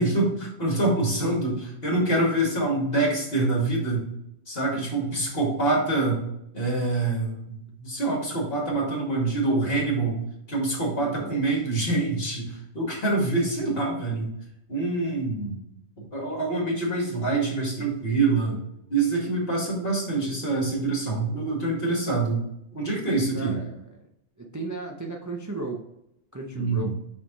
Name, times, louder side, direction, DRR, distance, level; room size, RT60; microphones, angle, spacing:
voice 1, 0.0-4.1 4.5-6.2 6.5-10.2 10.5-14.3 14.7-15.6 16.0-18.6 18.9-22.4 22.7-23.6 26.5-26.9, right 2 dB, 60° left, -2 dB, 2.3 m, -25 dB
voice 2, 4.7-5.1 11.0-11.3 21.9-22.0 23.3-24.0 24.4-25.8 26.3-26.9, right 2 dB, 20° right, 1 dB, 0.6 m, -36 dB
5.5 x 5.0 x 4.0 m, 0.80 s
omnidirectional pair, 1.1 m